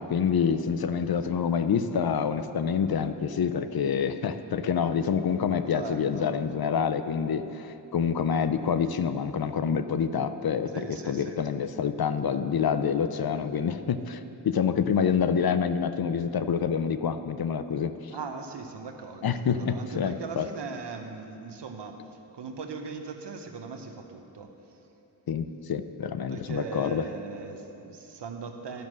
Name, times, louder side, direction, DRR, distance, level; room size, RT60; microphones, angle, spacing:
voice 1, 0.0-18.1 19.2-20.5 25.3-27.1, left 7 dB, 60° left, 11 dB, 0.6 m, -27 dB
voice 2, 5.7-6.3 10.7-11.4 18.1-22.0 22.3-24.5 26.3-28.9, right 5 dB, 75° right, 5 dB, 0.9 m, -39 dB
11.0 x 5.3 x 6.2 m, 2.9 s
cardioid pair, 40°, 42 cm